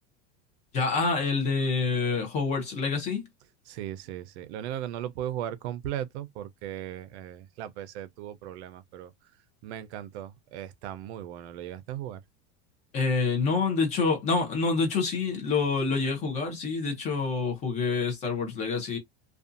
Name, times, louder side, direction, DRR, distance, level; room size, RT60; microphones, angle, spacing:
voice 1, 0.7-3.3 12.9-19.0, left 4 dB, 20° left, 0.6 m, -27 dB
voice 2, 3.7-9.1 9.6-12.2, right 11 dB, 70° right, 0.6 m, -37 dB
2.5 x 2.3 x 2.5 m
supercardioid pair, 180°, 35 cm